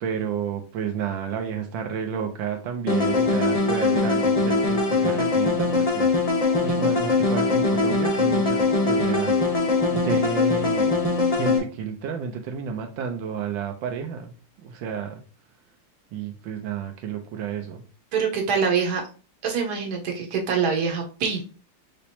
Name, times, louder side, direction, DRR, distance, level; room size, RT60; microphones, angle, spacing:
voice 1, 0.0-11.0 11.3-14.3 14.6-15.2 16.1-17.8, right 7 dB, 85° right, 4 dB, 1.4 m, -31 dB
sound 1, 2.9-11.6, left 3 dB, 55° left, 0.4 m, -22 dB
voice 2, 18.1-19.0 19.4-21.4, right 6 dB, 60° right, 2 dB, 1.5 m, -24 dB
5.0 x 3.4 x 2.8 m, 0.36 s
omnidirectional pair, 2.1 m